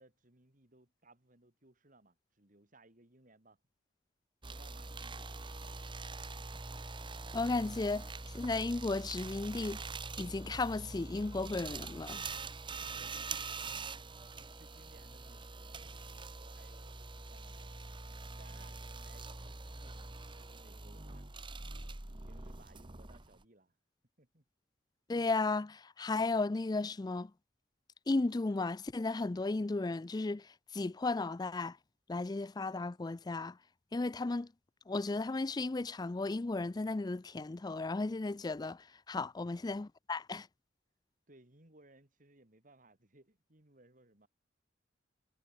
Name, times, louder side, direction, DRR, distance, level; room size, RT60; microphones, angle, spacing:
voice 1, 0.0-3.6 4.4-5.7 12.7-13.8 14.4-17.9 18.4-21.3 21.8-23.8 24.2-24.4 41.3-44.3, right 2 dB, 45° right, 3.1 m, -63 dB
sound 1, 4.4-23.4, right 3 dB, 25° right, 1.3 m, -44 dB
voice 2, 7.3-8.1 8.3-9.8 10.2-12.2 25.1-27.3 28.1-30.4 30.7-31.8 32.1-33.5 33.9-34.5 34.9-38.8 39.1-40.5, left 3 dB, 20° left, 0.4 m, -34 dB
head